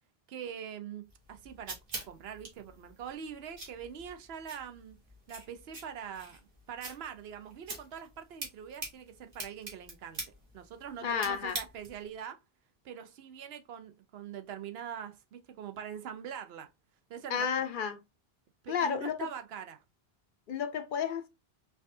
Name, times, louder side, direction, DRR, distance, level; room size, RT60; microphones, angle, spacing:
voice 1, 0.3-1.8 2.1-5.0 5.3-6.4 6.7-10.2 10.5-12.4 12.8-16.7 17.1-17.6 18.6-19.8, right 8 dB, 80° right, 0.8 m, -43 dB
sound 1, 1.1-12.1, right 2 dB, 60° right, 1.5 m, -45 dB
voice 2, 11.0-11.6 17.3-18.0 18.7-19.2 20.5-21.3, left 7 dB, 60° left, 0.7 m, -31 dB
4.7 x 2.4 x 2.5 m
omnidirectional pair, 1.0 m